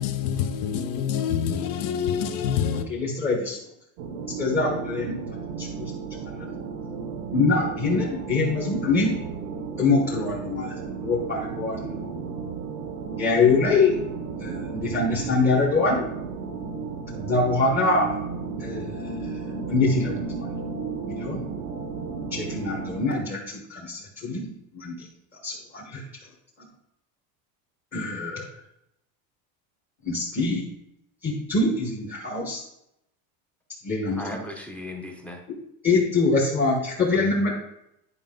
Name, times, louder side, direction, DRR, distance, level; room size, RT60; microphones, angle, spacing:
voice 1, 0.0-2.8, left 8 dB, 50° left, 0.9 m, -26 dB
voice 2, 2.9-3.6 4.4-5.2 5.6-5.9 6.3-6.5 7.3-9.1 9.8-12.2 13.2-13.9 14.4-16.0 17.1-18.1 18.6-20.3 21.0-21.4 22.3-24.5 24.7-25.0 25.4-26.0 27.9-28.5 30.0-30.6 31.2-32.6 33.8-34.2 35.8-37.5, left 3 dB, 20° left, 1.3 m, -24 dB
sound 1, 4.0-23.1, right 5 dB, 90° right, 1.0 m, -34 dB
voice 3, 34.1-35.4, left 1 dB, 5° left, 0.8 m, -36 dB
9.9 x 5.1 x 3.8 m
cardioid pair, 150°, 42 cm